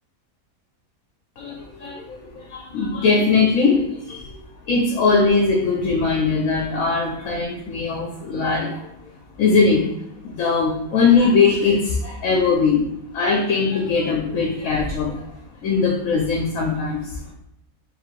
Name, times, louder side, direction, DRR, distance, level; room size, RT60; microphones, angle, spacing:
voice 1, 1.4-4.4 4.7-8.8 9.4-9.8 10.2-12.9 13.1-15.2 15.6-17.0, left 4 dB, 70° left, -1 dB, 1.1 m, -20 dB
3.7 x 2.5 x 4.5 m, 0.79 s
omnidirectional pair, 1.5 m